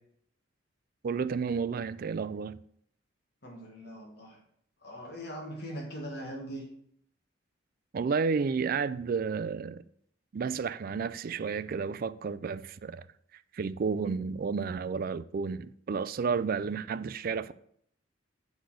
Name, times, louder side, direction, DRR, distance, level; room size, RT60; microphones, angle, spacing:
voice 1, 1.0-2.6 7.9-9.8 10.3-13.0 13.5-17.5, right 5 dB, 50° right, 0.3 m, -31 dB
voice 2, 3.4-4.4 4.8-6.6, equal, 60° left, 1.7 m, -41 dB
8.2 x 4.1 x 6.3 m
head